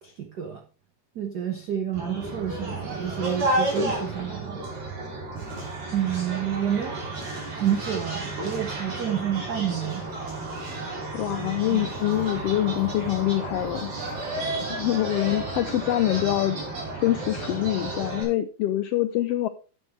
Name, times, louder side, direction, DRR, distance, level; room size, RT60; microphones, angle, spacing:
voice 1, 0.0-0.6 1.1-4.6 5.9-7.1 7.5-10.0 11.7-11.8, right 10 dB, 70° right, 3 dB, 0.9 m, -29 dB
sound 1, 1.9-18.2, right 2 dB, 55° right, 4.4 m, -32 dB
voice 2, 11.1-13.9 14.6-16.6 16.9-19.5, left 14 dB, 85° left, 10 dB, 1.4 m, -25 dB
10.5 x 7.7 x 3.3 m, 0.35 s
omnidirectional pair, 3.3 m